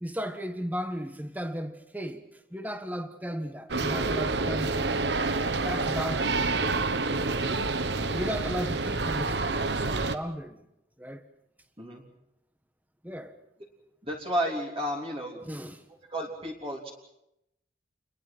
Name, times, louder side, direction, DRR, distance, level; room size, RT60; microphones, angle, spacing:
voice 1, 0.0-2.2 2.5-5.0 5.6-6.4 8.1-10.6 11.0-11.2 13.0-13.3 15.4-15.8, equal, 10° right, 1.5 m, -35 dB
sound 1, 3.7-10.1, right 3 dB, 75° right, 1.2 m, -28 dB
voice 2, 14.0-15.4 16.1-16.9, equal, 30° right, 3.4 m, -32 dB
29.0 x 22.0 x 6.1 m
head